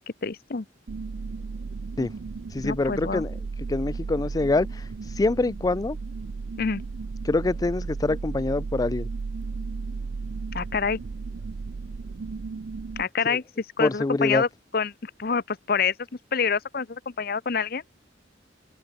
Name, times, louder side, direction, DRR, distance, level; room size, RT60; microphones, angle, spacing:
voice 1, 0.2-0.7 2.6-3.2 6.6-6.8 10.5-11.0 13.0-14.5 14.7-15.9 16.3-17.8, left 5 dB, 55° left, 0.8 m, -27 dB
sound 1, 0.9-13.0, right 4 dB, 65° right, 0.5 m, -34 dB
voice 2, 2.5-3.3 3.7-6.0 7.2-9.1 13.3-13.4 13.8-14.4, left 2 dB, 20° left, 0.3 m, -25 dB
head